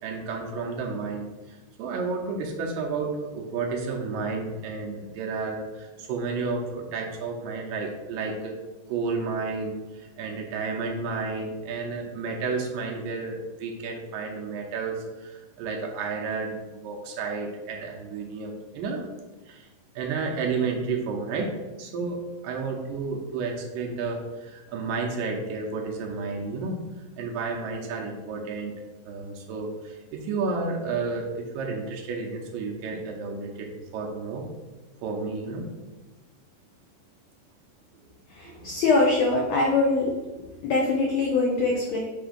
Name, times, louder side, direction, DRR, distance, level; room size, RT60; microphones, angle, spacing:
voice 1, 0.0-8.6 8.9-19.1 19.5-19.7 20.0-26.8 27.2-28.7 29.1-34.4 35.0-35.7 38.4-38.8, right 4 dB, 80° right, 0 dB, 2.4 m, -31 dB
voice 2, 38.4-40.1 40.6-42.0, left 3 dB, 85° left, -1 dB, 1.5 m, -23 dB
7.1 x 2.9 x 5.0 m, 1.1 s
omnidirectional pair, 4.1 m